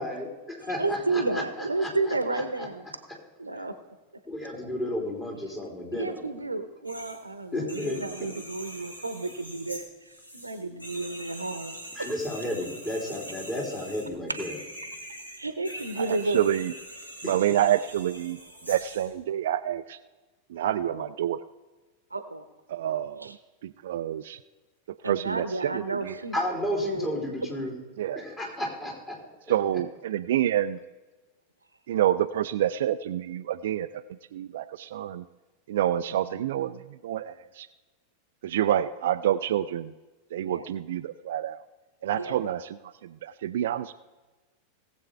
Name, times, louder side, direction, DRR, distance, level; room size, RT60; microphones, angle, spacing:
voice 1, 0.0-1.4 1.8-1.9 4.3-6.2 7.5-8.0 11.9-14.5 17.2-17.3 26.3-27.7 28.1-29.2, left 1 dB, 15° left, -2 dB, 3.4 m, -32 dB
voice 2, 0.8-2.9 3.4-3.7 5.9-12.1 15.4-16.4 20.8-21.1 22.1-22.5 23.1-23.4 25.0-26.4 26.7-27.2 36.1-36.8 40.4-40.7 42.1-42.4, right 3 dB, 80° right, 10 dB, 0.9 m, -32 dB
sound 1, 6.8-7.2 7.6-19.1, right 1 dB, 85° left, 2.4 m, -43 dB
voice 3, 16.1-16.7 17.2-18.4 18.7-20.0 20.5-21.4 22.7-23.3 23.6-24.4 25.0-26.1 28.0-28.2 29.5-30.8 31.9-33.9 34.3-35.2 35.7-36.7 37.0-37.7 38.4-39.9 40.3-41.6 42.0-42.6 43.0-43.9, right 11 dB, 60° right, 12 dB, 0.4 m, -27 dB
18.5 x 7.7 x 3.4 m, 1.2 s
figure-of-eight pair, 90°, 0 cm